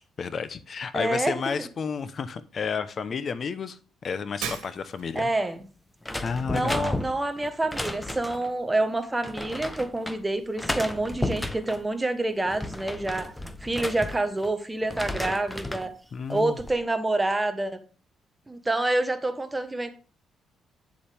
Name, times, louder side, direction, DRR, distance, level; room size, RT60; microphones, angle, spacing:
voice 1, 0.2-5.3 6.2-7.0 16.1-16.6, left 5 dB, 45° left, 13 dB, 0.8 m, -31 dB
voice 2, 0.9-1.7 5.1-5.6 6.5-13.4 13.6-15.9 16.3-17.8 18.5-19.9, right 2 dB, 15° right, 10 dB, 1.2 m, -27 dB
Shatter, 4.4-5.2, right 8 dB, 90° right, 1.7 m, -35 dB
sound 1, 6.0-8.5 9.2-10.2 10.6-11.8 12.3-14.5 14.8-15.9 16.4-16.8, left 1 dB, 10° left, 0.9 m, -33 dB
9.5 x 7.1 x 3.4 m, 0.37 s
cardioid pair, 90°, 0 cm